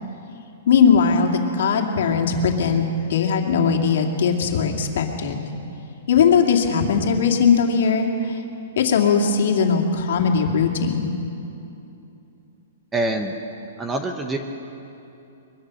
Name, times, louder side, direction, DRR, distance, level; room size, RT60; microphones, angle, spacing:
voice 1, 0.7-5.4 6.1-8.4 8.8-11.2, left 6 dB, 55° left, 2 dB, 2.5 m, -19 dB
voice 2, 12.9-13.3 13.8-14.4, right 2 dB, 10° right, 5 dB, 0.8 m, -25 dB
23.0 x 23.0 x 6.4 m, 2.8 s
hypercardioid pair, 180°, 0 cm